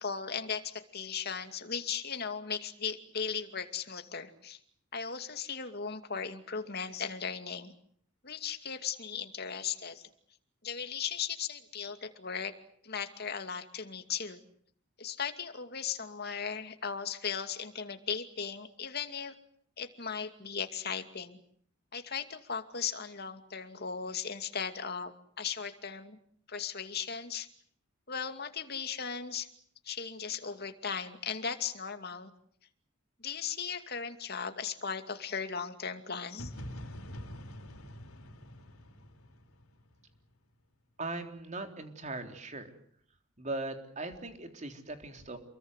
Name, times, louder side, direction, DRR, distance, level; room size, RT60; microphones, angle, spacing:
voice 1, 0.0-4.6 4.9-7.7 8.2-10.1 10.6-12.5 12.8-14.4 15.0-19.3 19.8-21.4 21.9-26.2 26.5-27.5 28.1-29.5 29.8-32.3 33.2-36.5, left 6 dB, 50° left, 8 dB, 2.5 m, -37 dB
sound 1, 36.4-40.2, equal, 85° left, 3.9 m, -45 dB
voice 2, 41.0-42.7 43.4-45.4, right 2 dB, 35° right, 6 dB, 3.6 m, -39 dB
28.5 x 22.5 x 8.1 m, 0.62 s
head